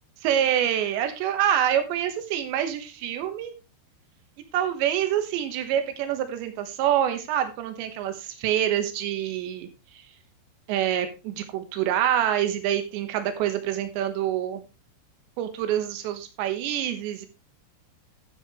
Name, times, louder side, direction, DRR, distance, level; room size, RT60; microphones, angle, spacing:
voice 1, 0.2-3.5 4.5-9.7 10.7-14.6 15.4-17.3, right 10 dB, 80° right, 8 dB, 3.6 m, -26 dB
13.5 x 7.7 x 3.2 m, 0.28 s
omnidirectional pair, 5.2 m